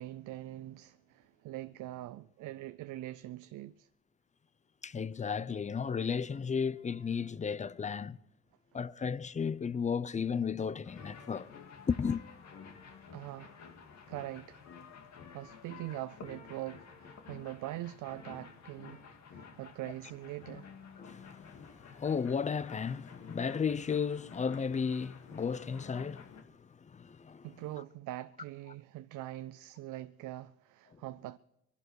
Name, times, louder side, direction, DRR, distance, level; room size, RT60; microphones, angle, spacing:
voice 1, 0.0-3.9 13.1-13.6 14.1-14.7 15.3-20.7 27.4-31.4, right 15 dB, 85° right, 0.5 m, -43 dB
voice 2, 4.8-8.2 8.7-11.5 11.9-12.2 21.0-27.5, left 6 dB, 25° left, 0.5 m, -34 dB
sound 1, 10.8-26.4, left 6 dB, 65° left, 2.0 m, -52 dB
23.5 x 11.5 x 4.7 m
cardioid pair, 90°, 30 cm